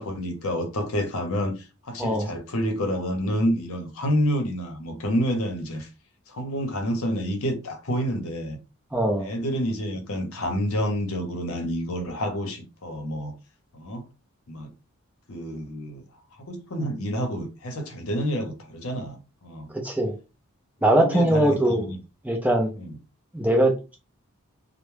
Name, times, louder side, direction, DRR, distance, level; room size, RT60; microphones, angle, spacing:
voice 1, 0.0-5.9 6.3-8.6 9.2-13.3 13.7-14.0 14.5-14.7 15.3-16.0 16.4-19.7 20.9-22.0 22.7-23.0, equal, 70° left, 0.7 m, -28 dB
voice 2, 2.0-2.3 8.9-9.3 19.8-20.1 20.8-21.8 22.2-22.7 23.3-24.0, right 1 dB, 5° right, 0.4 m, -21 dB
2.2 x 2.0 x 3.1 m
head